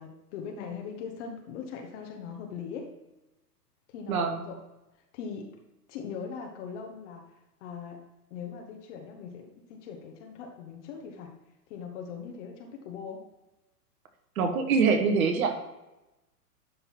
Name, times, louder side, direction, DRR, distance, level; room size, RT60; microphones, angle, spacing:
voice 1, 0.0-2.9 3.9-4.5 5.1-5.5 5.9-7.2 7.6-8.0 8.3-11.3 11.7-13.2, left 6 dB, 45° left, 2 dB, 1.4 m, -40 dB
voice 2, 4.1-4.5 14.4-15.8, right 5 dB, 60° right, 5 dB, 1.6 m, -25 dB
11.5 x 4.0 x 4.5 m, 1.0 s
hypercardioid pair, 125°, 48 cm